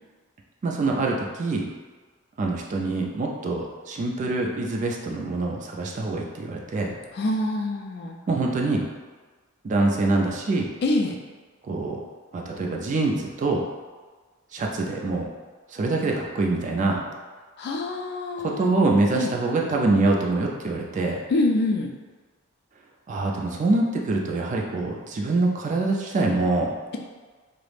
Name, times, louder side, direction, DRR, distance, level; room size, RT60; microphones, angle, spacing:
voice 1, 0.6-1.7 2.4-6.9 8.3-8.8 9.6-10.7 11.7-12.0 12.3-13.6 14.5-15.3 15.7-17.0 18.4-21.2 23.1-26.7, right 2 dB, 35° right, 0 dB, 0.3 m, -25 dB
voice 2, 7.1-8.2 10.8-11.2 17.6-18.7 19.1-19.3 21.3-21.9, left 2 dB, 50° left, 1 dB, 0.3 m, -25 dB
2.4 x 2.0 x 3.2 m, 1.4 s
head